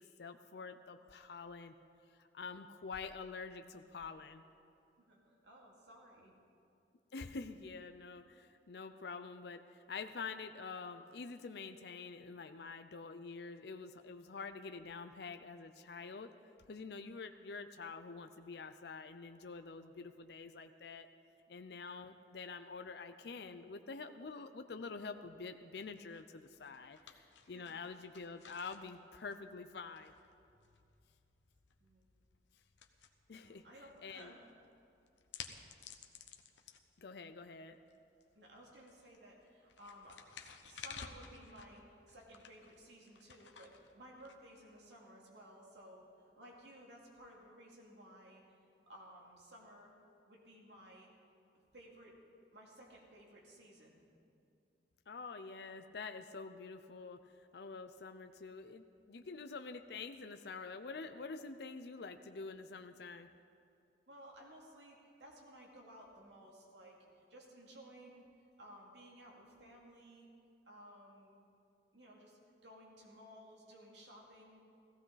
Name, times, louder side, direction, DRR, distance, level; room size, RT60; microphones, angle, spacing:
voice 1, 0.0-1.8 2.2-4.4 7.1-16.3 16.7-21.1 21.5-30.1 33.3-33.6 34.0-34.3 37.0-37.8 55.1-57.2 57.5-63.3, left 4 dB, 65° left, 8 dB, 0.5 m, -47 dB
voice 2, 5.0-6.3 21.5-21.6 27.4-27.8 31.8-32.0 33.3-34.4 38.3-48.4 48.9-49.9 50.3-51.1 51.7-52.2 52.5-54.0 64.1-68.3 68.6-70.3 70.7-71.4 71.9-74.6, equal, 75° right, -2 dB, 2.5 m, -57 dB
sound 1, 25.7-45.0, left 7 dB, 85° left, 0.9 m, -56 dB
16.0 x 15.0 x 4.0 m, 2.6 s
head